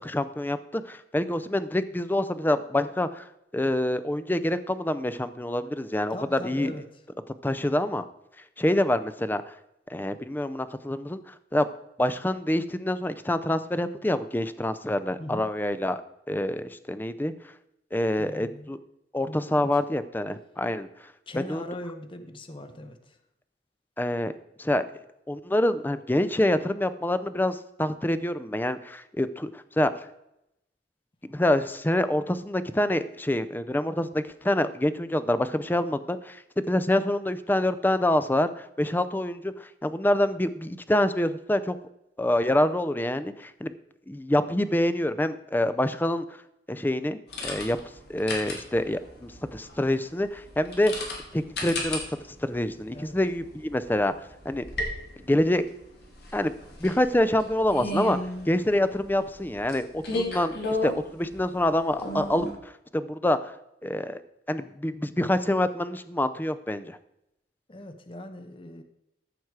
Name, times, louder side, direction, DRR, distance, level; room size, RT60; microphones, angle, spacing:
voice 1, 0.0-3.3 3.5-6.7 7.4-8.0 8.6-9.4 9.9-11.7 12.0-16.0 16.3-17.3 17.9-18.8 19.1-20.9 21.5-21.6 24.0-24.3 24.6-24.8 25.3-30.1 31.3-36.4 36.7-41.8 42.2-43.7 44.1-46.2 46.7-47.8 48.1-51.1 51.3-52.0 52.4-54.1 54.5-54.7 55.2-55.7 56.3-56.5 56.8-58.2 58.5-63.5 63.8-64.2 64.5-67.0, left 1 dB, 10° left, 12 dB, 0.5 m, -26 dB
voice 2, 6.1-6.9 15.2-15.4 18.2-18.7 19.3-19.7 21.3-23.2 52.9-53.2 67.7-68.8, left 1 dB, 30° left, 8 dB, 0.9 m, -40 dB
sound 1, 47.3-62.5, left 1 dB, 65° left, 2.7 m, -35 dB
14.0 x 6.0 x 4.7 m, 0.84 s
head